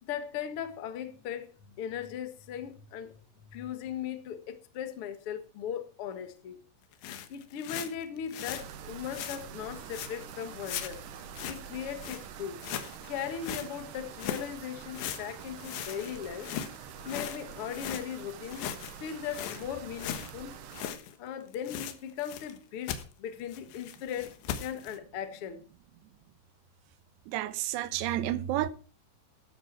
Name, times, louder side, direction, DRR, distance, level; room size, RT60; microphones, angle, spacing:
voice 1, 0.0-6.6 7.3-11.0 11.4-12.6 13.1-16.5 16.8-18.7 19.0-20.6 21.2-25.6, left 8 dB, 55° left, 1.5 m, -38 dB
sound 1, 6.9-8.6 9.1-9.4 9.9-10.2 10.6-11.7 12.0-12.2 12.6-13.7 14.2-14.5 14.9-18.0 18.4-21.2 21.4-22.6 22.9-23.0 23.5-25.0, left 10 dB, 85° left, 3.5 m, -38 dB
sound 2, 8.5-20.9, right 8 dB, 65° right, 2.2 m, -46 dB
voice 2, 27.3-28.7, right 13 dB, 85° right, 3.1 m, -30 dB
13.0 x 13.0 x 4.6 m
omnidirectional pair, 4.9 m